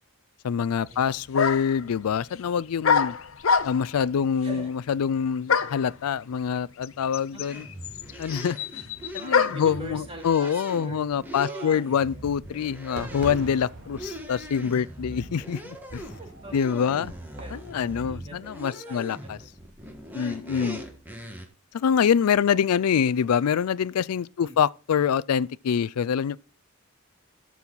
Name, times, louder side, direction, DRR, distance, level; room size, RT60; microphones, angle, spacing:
voice 1, 0.4-3.2 3.6-7.7 8.2-8.8 9.1-16.1 16.5-17.1 17.5-19.4 20.1-20.8 21.7-26.4, left 7 dB, 85° left, 0.4 m, -25 dB
sound 1, 0.9-1.0 1.3-1.8 2.8-4.0 5.5-5.9 6.8-6.9 7.1-9.7, left 6 dB, 65° left, 0.8 m, -24 dB
voice 2, 7.3-7.9 9.1-12.2 16.2-19.5 20.6-21.0 22.5-22.7 24.4-24.6, right 1 dB, 25° right, 2.6 m, -44 dB
sound 2, 7.4-21.5, equal, 10° right, 1.5 m, -41 dB
Fireworks, 13.0-18.0, right 2 dB, 50° right, 2.5 m, -43 dB
13.0 x 6.2 x 3.9 m
head